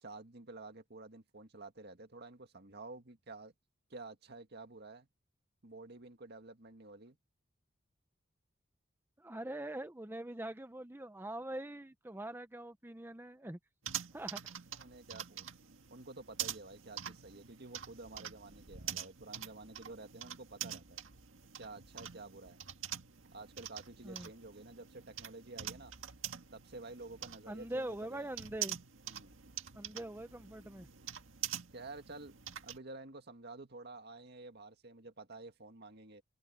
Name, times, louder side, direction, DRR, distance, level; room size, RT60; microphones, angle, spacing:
voice 1, 0.0-3.5 3.9-5.1 5.6-7.2 14.7-15.5 15.9-21.0 21.6-22.6 23.3-25.9 26.5-28.3 29.1-29.4 31.7-32.3 32.6-36.2, right 2 dB, 55° right, 2.0 m, -50 dB
voice 2, 9.2-13.6 14.1-14.5 24.0-24.3 27.5-28.8 29.7-30.9, right 1 dB, 10° right, 0.7 m, -43 dB
sound 1, 13.8-32.8, right 10 dB, 85° right, 1.8 m, -45 dB
head